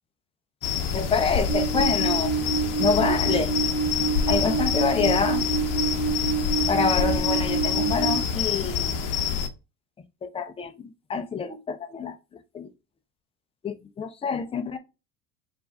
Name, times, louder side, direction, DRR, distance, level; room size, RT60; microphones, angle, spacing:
sound 1, 0.6-9.5, left 7 dB, 45° left, 0.9 m, -27 dB
voice 1, 0.9-2.3 2.8-3.5 4.3-5.4 6.7-9.0 10.2-12.2 12.5-12.7 13.6-14.8, left 5 dB, 15° left, 0.5 m, -27 dB
sound 2, 1.4-8.2, right 6 dB, 20° right, 1.6 m, -27 dB
4.5 x 2.6 x 3.4 m
hypercardioid pair, 90°, 46 cm